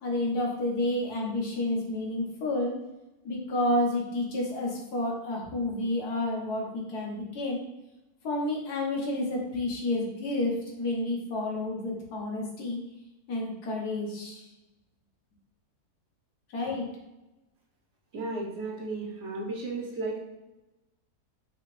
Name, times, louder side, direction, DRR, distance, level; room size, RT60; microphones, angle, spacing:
voice 1, 0.0-2.7 3.2-7.6 8.2-12.8 13.3-14.5 16.5-16.9, left 1 dB, 90° left, -2 dB, 1.6 m, -30 dB
voice 2, 18.1-20.2, right 2 dB, 55° right, -2 dB, 1.1 m, -34 dB
5.6 x 2.9 x 3.1 m, 0.99 s
omnidirectional pair, 1.6 m